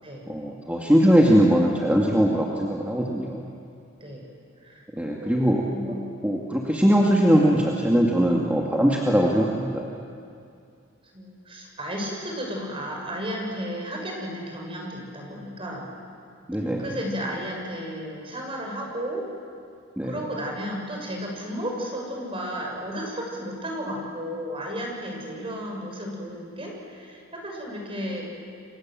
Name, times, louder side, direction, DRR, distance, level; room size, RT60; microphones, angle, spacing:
voice 1, 0.3-3.4 4.9-5.9 6.2-9.9 16.5-16.8 20.0-20.1, equal, 5° right, -2 dB, 2.2 m, -21 dB
voice 2, 4.6-6.1 11.1-15.9 16.8-19.2 20.0-28.3, equal, 30° right, 0 dB, 6.7 m, -33 dB
30.0 x 25.0 x 7.7 m, 2.4 s
head